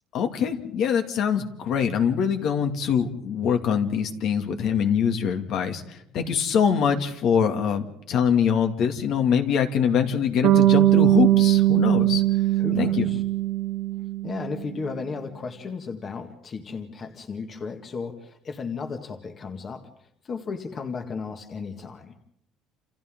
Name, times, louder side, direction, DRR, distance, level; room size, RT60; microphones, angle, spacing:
voice 1, 0.1-12.2 12.8-13.1, left 7 dB, 60° left, 5 dB, 2.4 m, -24 dB
Bass guitar, 10.4-14.6, right 14 dB, 70° right, 1.8 m, -20 dB
voice 2, 12.6-13.2 14.2-22.1, left 5 dB, 35° left, 5 dB, 2.0 m, -35 dB
29.0 x 28.5 x 3.8 m, 0.75 s
cardioid pair, 130°, 0 cm